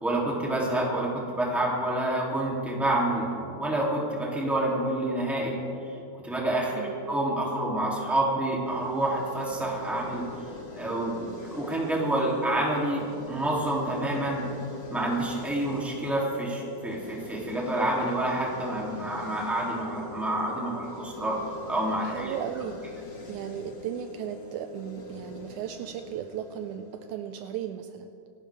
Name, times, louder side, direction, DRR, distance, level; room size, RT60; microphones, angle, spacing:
voice 1, 0.0-5.6 6.2-10.2 10.7-14.4 14.9-21.4 21.7-22.3, right 1 dB, ahead, -4 dB, 2.3 m, -28 dB
sound 1, 8.6-27.7, left 3 dB, 40° left, 2.1 m, -42 dB
voice 2, 22.0-22.8 23.3-28.1, right 10 dB, 80° right, 8 dB, 1.9 m, -36 dB
26.5 x 12.0 x 3.5 m, 2.6 s
omnidirectional pair, 3.7 m